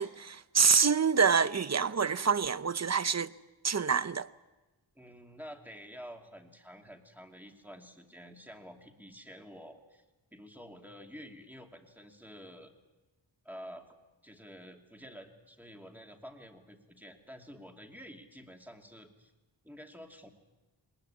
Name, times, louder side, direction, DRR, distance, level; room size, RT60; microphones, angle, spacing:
voice 1, 0.0-3.3 3.6-4.3, right 6 dB, 35° right, 0.8 m, -26 dB
voice 2, 4.9-10.0 10.3-12.7 13.4-14.0 14.2-19.3 19.6-20.3, equal, 5° right, 2.7 m, -49 dB
21.5 x 20.0 x 8.6 m
wide cardioid pair, 60°, 45 cm